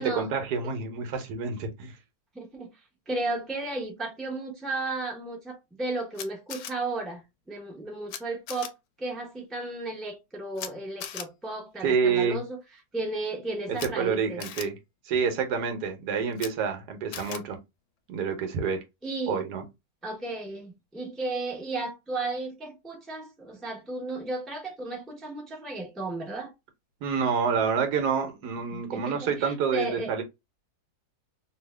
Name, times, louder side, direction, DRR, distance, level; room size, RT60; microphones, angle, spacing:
voice 1, 0.0-1.9 11.8-12.4 13.7-14.7 15.1-17.6 18.1-18.8 19.3-19.6 27.0-30.2, right 6 dB, 80° right, 1.3 m, -28 dB
voice 2, 2.3-2.7 3.1-12.6 12.9-14.4 19.0-19.4 20.0-26.5 28.7-30.1, right 2 dB, ahead, 0.7 m, -34 dB
Camera, 6.1-6.7 8.1-8.2 8.5-8.7 10.6-10.7 11.0-11.3 13.7-13.9 14.4-14.6 16.3-16.5 17.1-17.4, left 9 dB, 75° left, 1.1 m, -37 dB
2.8 x 2.8 x 3.2 m
omnidirectional pair, 1.7 m